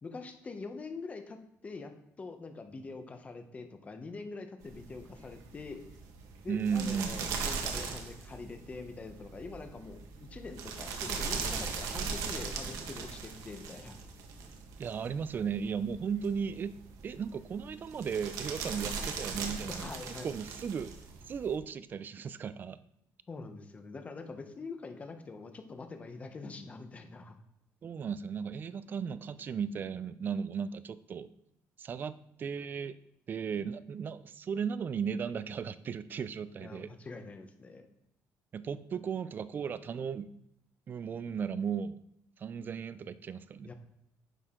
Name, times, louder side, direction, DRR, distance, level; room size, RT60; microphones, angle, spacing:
voice 1, 0.0-1.9 2.2-5.8 6.4-14.0 19.7-20.3 23.3-27.3 36.6-37.9 43.6-43.7, left 3 dB, 25° left, 7 dB, 1.0 m, -44 dB
sound 1, 4.6-21.6, right 5 dB, 75° right, 1.4 m, -40 dB
voice 2, 6.5-7.5 14.8-16.8 17.0-20.9 21.3-22.8 27.8-31.3 31.8-32.9 33.3-36.9 38.5-40.3 40.9-42.0 42.4-43.7, right 6 dB, 35° right, 14 dB, 0.4 m, -36 dB
9.9 x 6.3 x 3.8 m, 0.80 s
cardioid pair, 145°, 6 cm